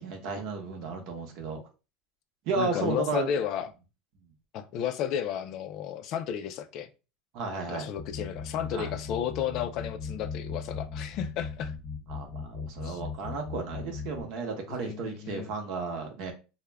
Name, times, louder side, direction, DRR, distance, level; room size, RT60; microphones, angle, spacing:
voice 1, 0.0-1.6 2.5-3.4 7.3-7.9 8.7-8.9 12.1-16.3, right 4 dB, 55° right, 0.7 m, -33 dB
voice 2, 2.6-3.7 4.5-6.9 7.7-11.7 12.8-13.0 14.7-15.5, left 9 dB, 45° left, 0.3 m, -33 dB
sound 1, 8.0-14.2, left 5 dB, 20° left, 0.7 m, -38 dB
2.3 x 2.1 x 3.3 m
supercardioid pair, 150°, 0 cm